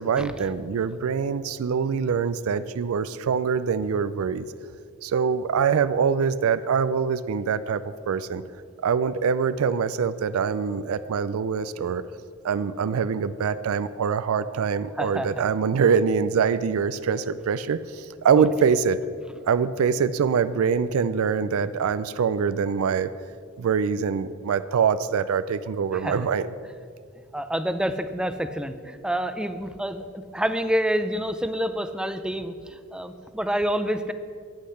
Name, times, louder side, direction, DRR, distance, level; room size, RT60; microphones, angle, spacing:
voice 1, 0.0-4.5 5.0-8.4 8.8-12.0 12.4-19.0 19.5-23.1 23.6-26.6, right 6 dB, 90° right, 14 dB, 0.4 m, -24 dB
voice 2, 15.0-15.4 18.4-18.5 25.9-26.2 27.3-30.1 30.3-34.1, equal, 5° right, 10 dB, 0.4 m, -28 dB
11.5 x 8.4 x 5.7 m, 2.2 s
head